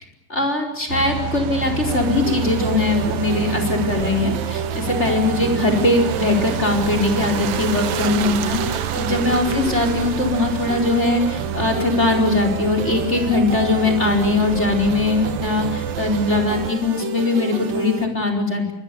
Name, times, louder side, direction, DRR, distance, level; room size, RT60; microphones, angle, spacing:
voice 1, 0.3-18.7, left 3 dB, 20° left, 5 dB, 4.8 m, -21 dB
sound 1, 0.9-16.7, right 10 dB, 65° right, 1.5 m, -28 dB
sound 2, 1.9-18.1, right 5 dB, 85° right, 3.9 m, -30 dB
27.0 x 23.0 x 6.9 m, 0.86 s
omnidirectional pair, 3.9 m